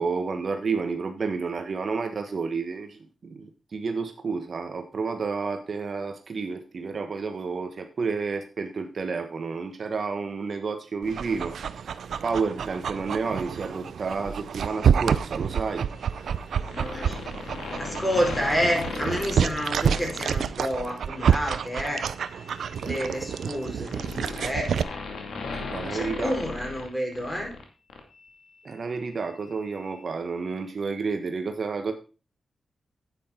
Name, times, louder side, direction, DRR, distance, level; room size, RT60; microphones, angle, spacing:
voice 1, 0.0-11.5 12.2-15.9 25.5-26.4 28.6-31.9, right 4 dB, 55° right, 6 dB, 1.3 m, -30 dB
Dog, 11.0-24.8, right 7 dB, 85° right, 0.6 m, -28 dB
voice 2, 16.6-17.2 17.7-22.1 22.8-24.0 24.3-24.9 25.9-27.5, equal, 10° left, 0 dB, 5.0 m, -29 dB
sound 1, 16.7-20.4 20.8-21.1 22.3-27.6 27.9-28.0, left 4 dB, 90° left, 2.4 m, -36 dB
9.7 x 9.1 x 4.4 m, 0.34 s
wide cardioid pair, 100°, 0 cm